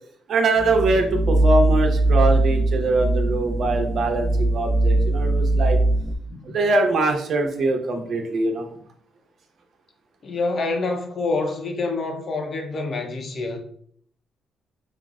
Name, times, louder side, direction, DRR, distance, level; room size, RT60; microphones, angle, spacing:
voice 1, 0.3-5.8 6.4-8.7, right 2 dB, 55° right, 0.7 m, -22 dB
sound 1, 0.6-6.2, right 2 dB, 20° right, 0.5 m, -20 dB
voice 2, 6.3-6.6 8.0-8.1 10.2-13.6, left 3 dB, 50° left, 0.6 m, -27 dB
5.3 x 2.0 x 2.4 m
cardioid pair, 90°, 0 cm